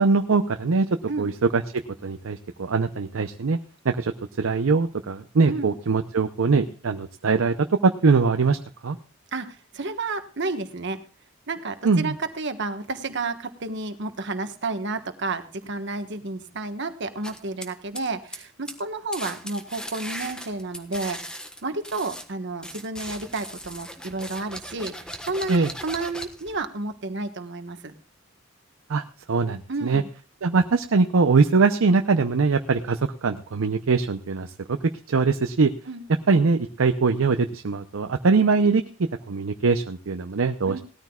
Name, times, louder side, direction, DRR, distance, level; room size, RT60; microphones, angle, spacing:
voice 1, 0.0-0.9 1.2-1.6 2.0-3.6 3.8-4.1 4.4-9.0 11.8-12.1 25.5-25.7 28.9-30.0 30.4-34.8 35.1-35.7 36.3-38.8 39.3-40.8, right 4 dB, 85° right, 7 dB, 0.6 m, -22 dB
voice 2, 9.3-11.0 11.5-24.9 25.2-27.9 29.7-30.1 35.9-36.1 40.6-40.8, right 3 dB, 60° right, 8 dB, 1.3 m, -31 dB
sound 1, 17.2-18.4 18.7-18.8 19.1-22.3 22.6-26.6, equal, 5° left, 1.2 m, -38 dB
19.0 x 13.5 x 2.3 m, 0.36 s
head